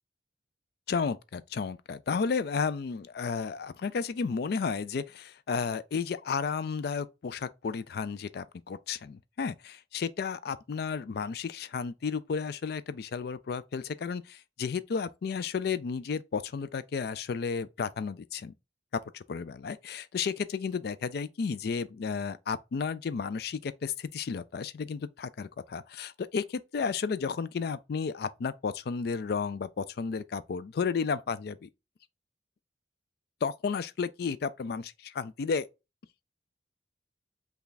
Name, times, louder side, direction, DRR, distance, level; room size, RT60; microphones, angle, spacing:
voice 1, 0.9-18.5 18.9-31.7 33.4-35.7, left 5 dB, 60° left, 0.4 m, -33 dB
5.7 x 2.3 x 3.9 m
head